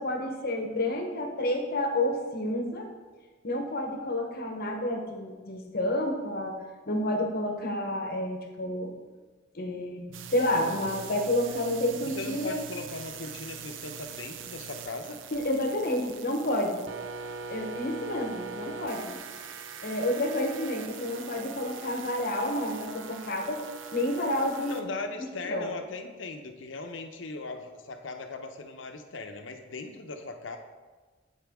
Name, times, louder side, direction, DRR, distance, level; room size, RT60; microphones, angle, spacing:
voice 1, 0.0-2.9 3.4-6.6 6.9-8.9 9.5-12.6 15.3-16.9 17.5-19.2 19.8-23.6 23.9-24.9 25.4-25.7, left 1 dB, 55° left, 3 dB, 1.0 m, -30 dB
sound 1, 10.1-24.8, right 5 dB, 80° right, 0.5 m, -42 dB
voice 2, 12.0-15.2 24.7-30.6, left 3 dB, 75° left, 6 dB, 0.7 m, -38 dB
9.1 x 4.5 x 3.5 m, 1.3 s
head